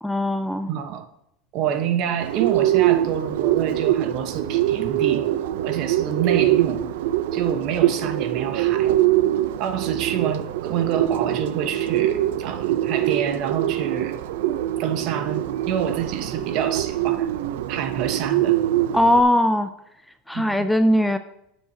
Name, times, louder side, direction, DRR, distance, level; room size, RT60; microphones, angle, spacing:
voice 1, 0.0-0.7 18.9-19.7 20.3-21.2, left 1 dB, ahead, 9 dB, 0.4 m, -19 dB
voice 2, 0.7-1.1 1.5-5.3 5.6-6.9 7.3-8.9 9.6-14.2 14.8-17.3 17.7-18.6 20.3-20.7, right 8 dB, 45° right, 8 dB, 1.2 m, -27 dB
Bird, 2.2-19.2, right 13 dB, 80° right, 0.6 m, -23 dB
17.0 x 7.2 x 2.9 m, 0.79 s
supercardioid pair, 155°, 0 cm